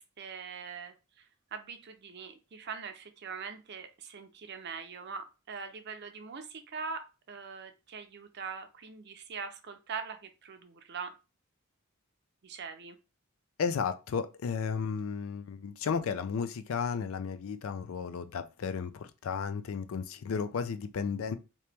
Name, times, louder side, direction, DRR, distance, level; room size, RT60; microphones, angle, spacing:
voice 1, 0.0-11.1 12.4-13.0, right 5 dB, 50° right, 0.5 m, -42 dB
voice 2, 13.6-21.4, left 6 dB, 65° left, 0.4 m, -33 dB
2.9 x 2.9 x 3.3 m
head